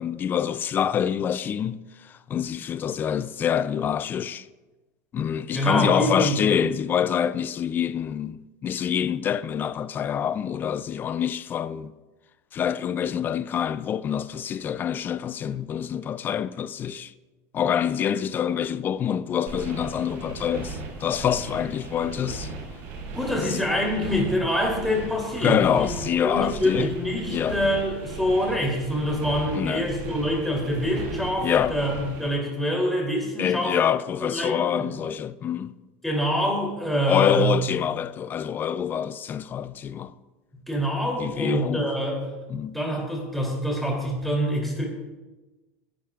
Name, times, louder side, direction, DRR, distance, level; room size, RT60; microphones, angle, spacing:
voice 1, 0.0-4.5 5.1-11.9 12.5-17.1 17.5-22.5 23.4-23.6 25.4-26.9 27.3-27.6 29.5-29.9 31.4-31.8 33.4-35.8 37.1-40.1 41.2-41.9 42.5-42.8, left 8 dB, 25° left, 0.4 m, -26 dB
voice 2, 5.5-6.4 23.1-25.9 26.2-33.8 34.2-34.8 36.0-37.5 40.7-42.2 42.5-44.8, equal, ahead, 3.0 m, -25 dB
sound 1, 19.5-32.3, right 3 dB, 65° right, 4.2 m, -37 dB
18.0 x 11.5 x 2.4 m
supercardioid pair, 145°, 7 cm